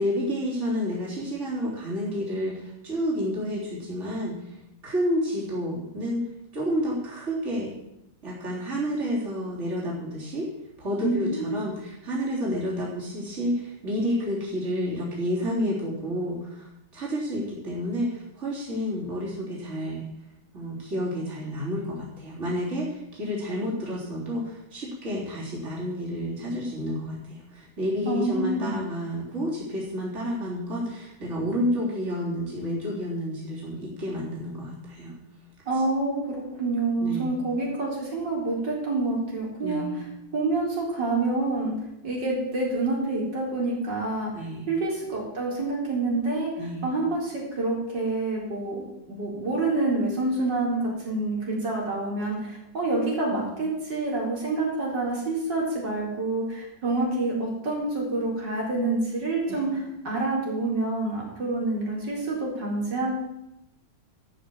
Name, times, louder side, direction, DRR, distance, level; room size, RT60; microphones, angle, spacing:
voice 1, 0.0-4.4 4.8-6.3 6.5-7.7 8.2-10.5 10.8-16.7 16.9-20.0 20.5-35.1 37.0-37.4 39.6-40.0 44.3-44.7 46.6-46.9 59.5-59.6, equal, 40° right, -5 dB, 4.1 m, -30 dB
voice 2, 11.0-11.5 28.0-28.8 35.7-41.7 42.0-44.3 44.7-46.5 46.8-59.7 60.0-63.2, right 2 dB, 80° right, -3 dB, 4.7 m, -27 dB
12.5 x 8.7 x 7.3 m, 0.86 s
omnidirectional pair, 1.9 m